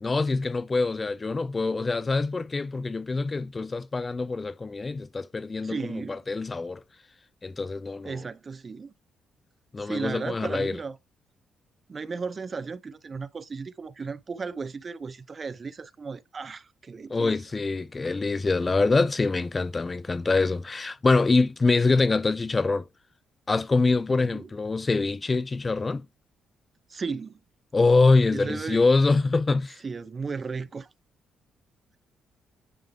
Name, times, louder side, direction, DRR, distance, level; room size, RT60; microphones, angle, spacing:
voice 1, 0.0-6.8 7.4-8.2 9.7-10.8 17.1-22.9 23.5-26.1 27.7-29.8, left 3 dB, 25° left, 0.4 m, -24 dB
voice 2, 5.6-6.2 8.0-8.9 9.8-11.0 11.9-17.4 24.1-24.5 26.9-27.4 28.3-28.8 29.8-30.9, right 5 dB, 35° right, 0.6 m, -35 dB
9.2 x 3.4 x 3.5 m
cardioid pair, 90°, 0 cm